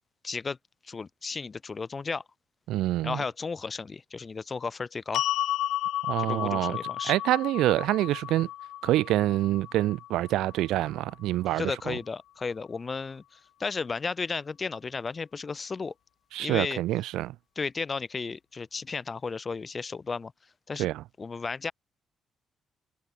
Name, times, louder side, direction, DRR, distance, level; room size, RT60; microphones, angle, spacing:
voice 1, 0.2-0.6 0.8-2.2 3.0-5.2 6.2-7.2 11.5-15.9 16.4-16.8 17.6-20.3 20.7-20.9 21.2-21.7, left 4 dB, 35° left, 5.7 m, -34 dB
voice 2, 2.7-3.2 6.1-6.8 7.0-8.5 8.8-12.0 16.3-17.3 20.8-21.0, right 15 dB, 90° right, 0.4 m, -26 dB
sound 1, 5.1-11.4, left 13 dB, 85° left, 2.1 m, -33 dB
cardioid pair, 90°, 0 cm